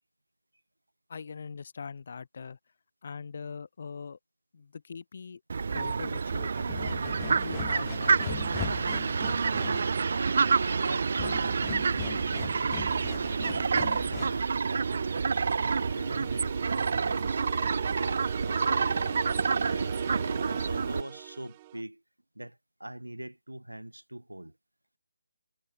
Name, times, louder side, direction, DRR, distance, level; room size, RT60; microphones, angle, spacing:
voice 1, 1.1-2.6 3.0-4.2 4.5-5.4 5.7-8.9 16.1-16.3 17.2-17.3, left 5 dB, 50° left, 1.3 m, -42 dB
Fowl, 5.5-21.0, right 5 dB, 50° right, 0.3 m, -28 dB
sound 1, 5.6-14.6, left 31 dB, 15° left, 0.6 m, -42 dB
voice 2, 10.1-13.8 14.1-15.0 15.6-20.0 20.5-22.0 22.3-24.6, right 1 dB, 85° right, 2.4 m, -43 dB
sound 2, 14.8-21.8, right 16 dB, 25° right, 1.4 m, -42 dB
figure-of-eight pair, 145°, 0 cm